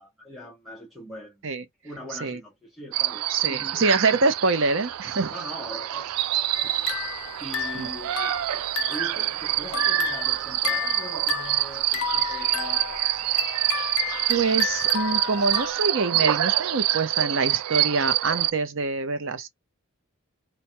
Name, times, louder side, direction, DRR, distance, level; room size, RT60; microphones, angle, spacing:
voice 1, 0.0-1.5 1.8-3.8 5.3-7.0 7.4-13.2, equal, ahead, 0.8 m, -42 dB
sound 1, 2.9-18.5, right 14 dB, 80° right, 0.3 m, -26 dB
voice 2, 3.3-5.3 7.7-7.9 14.3-19.5, right 3 dB, 55° right, 0.7 m, -25 dB
sound 2, 6.5-9.2 9.6-15.7, left 9 dB, 70° left, 0.5 m, -32 dB
4.6 x 2.3 x 2.7 m
head